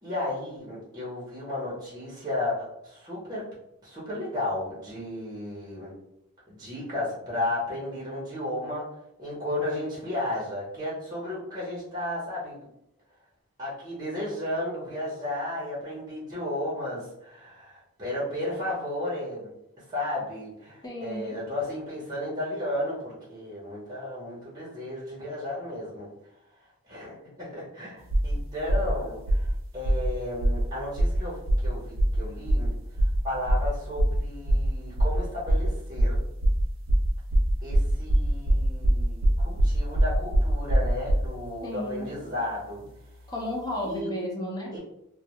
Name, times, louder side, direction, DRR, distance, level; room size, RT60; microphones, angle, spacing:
voice 1, 0.0-3.4 3.8-5.9 6.5-8.8 9.2-12.6 13.6-19.5 19.9-26.1 26.9-32.7 33.2-36.2 37.6-42.8 43.8-44.1 44.7-44.8, left 1 dB, 20° right, -6 dB, 0.7 m, -33 dB
voice 2, 20.8-21.4 41.6-42.1 43.3-44.7, left 1 dB, 15° left, -2 dB, 0.5 m, -33 dB
sound 1, 28.1-28.3 28.7-28.9 29.3-29.5 29.8-30.1 30.4-30.6 31.0-31.2 31.5-31.7 32.0-32.2 32.5-32.7 33.0-33.2 33.5-33.7 34.0-34.2 34.5-34.7 35.0-35.2 35.5-35.7 36.0-41.3, right 1 dB, 60° right, 0.4 m, -22 dB
2.1 x 2.1 x 2.8 m, 0.79 s
head